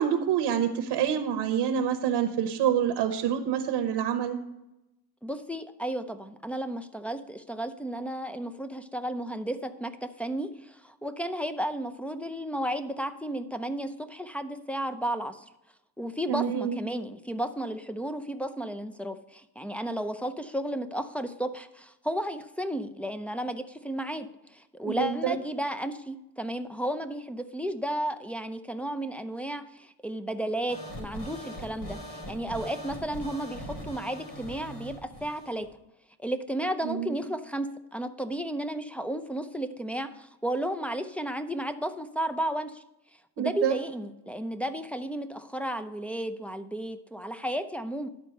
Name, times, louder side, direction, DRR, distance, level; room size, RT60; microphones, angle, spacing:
voice 1, 0.0-4.4 16.3-16.8 24.8-25.4 36.8-37.1 43.4-43.8, right 9 dB, 85° right, 7 dB, 1.0 m, -27 dB
voice 2, 5.2-15.5 16.0-35.7 36.2-42.8 43.4-48.1, right 1 dB, 5° left, 6 dB, 0.5 m, -33 dB
sound 1, 30.7-35.7, equal, 70° left, 3.7 m, -41 dB
11.0 x 4.4 x 6.4 m, 0.92 s
cardioid pair, 105°, 41 cm